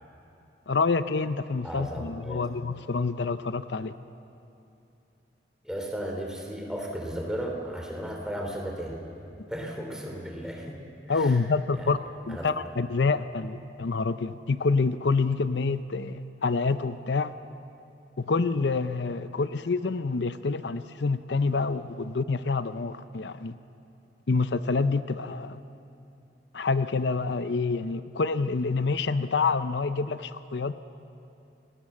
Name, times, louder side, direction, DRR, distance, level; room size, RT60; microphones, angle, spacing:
voice 1, 0.7-3.9 11.1-12.0 12.3-17.3 18.2-23.6 24.3-25.6 26.5-30.7, left 4 dB, 70° left, 12 dB, 0.6 m, -27 dB
voice 2, 1.6-2.5 5.6-9.0 9.5-10.8 11.1-11.4 11.7-11.9 12.3-12.5, equal, 5° right, 1 dB, 3.2 m, -35 dB
28.5 x 18.5 x 7.4 m, 2.8 s
head